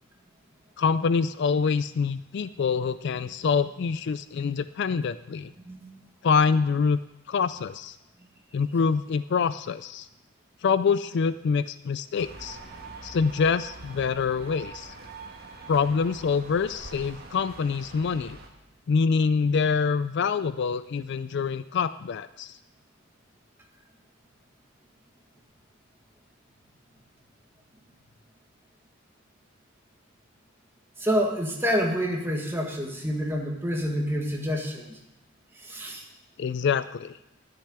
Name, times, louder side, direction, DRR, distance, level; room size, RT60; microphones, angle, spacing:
voice 1, 0.8-5.5 6.2-7.0 7.3-8.0 8.5-10.1 10.6-12.6 13.0-14.9 15.7-18.4 18.9-22.6 36.4-37.2, left 5 dB, 55° left, 14 dB, 0.3 m, -25 dB
voice 2, 5.7-6.0 31.0-35.0 35.6-36.0, equal, 10° right, 0 dB, 1.8 m, -28 dB
sound 1, 12.2-18.5, right 3 dB, 45° right, 1.7 m, -44 dB
11.5 x 6.8 x 9.5 m, 0.90 s
head